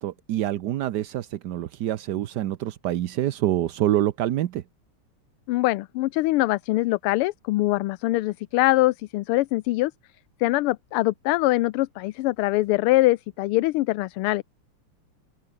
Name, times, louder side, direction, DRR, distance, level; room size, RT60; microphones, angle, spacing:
voice 1, 0.0-4.6, right 13 dB, 65° right, 1.1 m, -26 dB
voice 2, 5.5-9.9 10.4-14.4, left 19 dB, 85° left, 1.5 m, -23 dB
open air
omnidirectional pair, 2.4 m